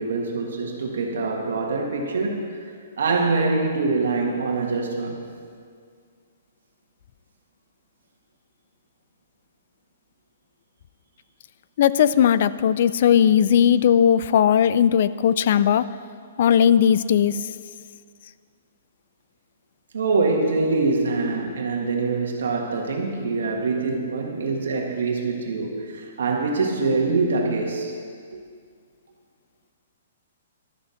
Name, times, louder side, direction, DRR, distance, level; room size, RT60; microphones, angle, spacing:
voice 1, 0.0-2.6 3.0-5.3 19.9-27.9 28.3-28.4, right 3 dB, 80° right, 1 dB, 1.6 m, -24 dB
voice 2, 11.8-15.8 16.4-17.3, left 9 dB, 45° left, 16 dB, 0.3 m, -18 dB
12.0 x 6.9 x 6.4 m, 2.1 s
hypercardioid pair, 170°, 0 cm